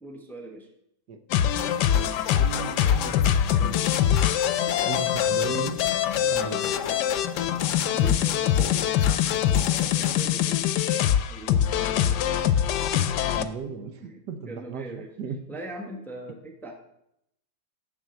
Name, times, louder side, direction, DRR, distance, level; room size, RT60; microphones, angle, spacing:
voice 1, 0.0-0.7 6.2-6.5 7.9-10.7 11.3-12.2 13.1-13.2 14.0-15.1 15.5-16.7, right 2 dB, ahead, 2 dB, 0.9 m, -41 dB
sound 1, 1.3-13.4, left 10 dB, 80° left, 1.2 m, -23 dB
sound 2, 1.5-10.2, left 7 dB, 60° left, 0.9 m, -36 dB
voice 2, 2.3-4.4 4.8-5.8 6.3-6.7 7.8-7.9 13.3-15.4, right 5 dB, 75° right, 7 dB, 1.4 m, -37 dB
7.2 x 5.9 x 7.6 m, 0.81 s
omnidirectional pair, 1.8 m